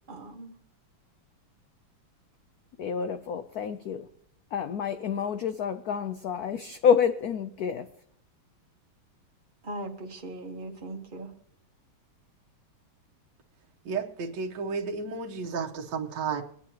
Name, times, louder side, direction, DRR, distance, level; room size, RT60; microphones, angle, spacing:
voice 1, 0.1-0.5 9.6-11.3, right 2 dB, 30° right, 3 dB, 1.1 m, -39 dB
voice 2, 2.8-4.1 4.5-8.0, left 7 dB, 75° left, 9 dB, 0.8 m, -28 dB
voice 3, 13.8-16.4, right 5 dB, 65° right, 1 dB, 1.5 m, -32 dB
25.0 x 9.2 x 2.8 m, 0.71 s
omnidirectional pair, 2.2 m